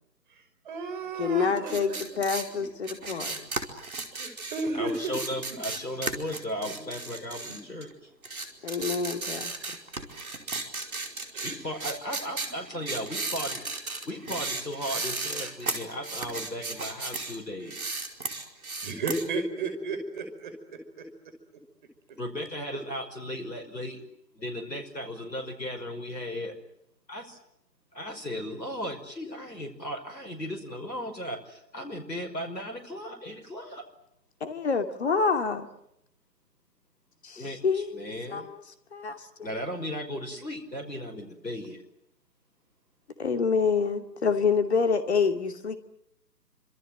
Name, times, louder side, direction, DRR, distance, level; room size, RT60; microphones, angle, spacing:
voice 1, 0.7-2.2 4.1-5.1 5.5-5.6 7.5-7.6 11.3-11.5 18.8-21.1, right 3 dB, 30° right, 5.6 m, -33 dB
voice 2, 1.2-3.5 8.6-9.5 34.4-35.7 37.2-38.6 38.9-39.5 43.2-45.8, left 5 dB, 40° left, 2.6 m, -27 dB
sound 1, 1.6-7.9 8.2-17.4 17.6-19.2, right 3 dB, 55° right, 5.0 m, -35 dB
voice 3, 4.7-7.9 11.4-13.6 14.1-18.0 22.2-24.0 24.3-26.5 27.1-27.4 27.9-33.8 37.4-38.5 39.4-41.8, equal, 80° left, 5.7 m, -36 dB
28.0 x 26.5 x 8.0 m
figure-of-eight pair, 145°, 50 cm